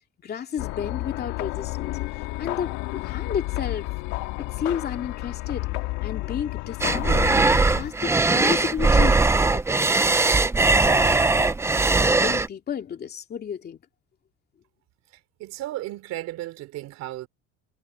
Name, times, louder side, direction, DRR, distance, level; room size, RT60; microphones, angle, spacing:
voice 1, 0.2-3.9 4.5-5.7 6.0-10.2 10.8-11.6 11.9-13.8, left 8 dB, 35° left, 2.7 m, -32 dB
sound 1, 0.6-7.9, left 20 dB, 85° left, 1.9 m, -31 dB
sound 2, 6.8-12.5, right 3 dB, 10° right, 0.6 m, -20 dB
voice 2, 15.4-17.3, right 16 dB, 65° right, 4.0 m, -34 dB
cardioid pair, 140°, 29 cm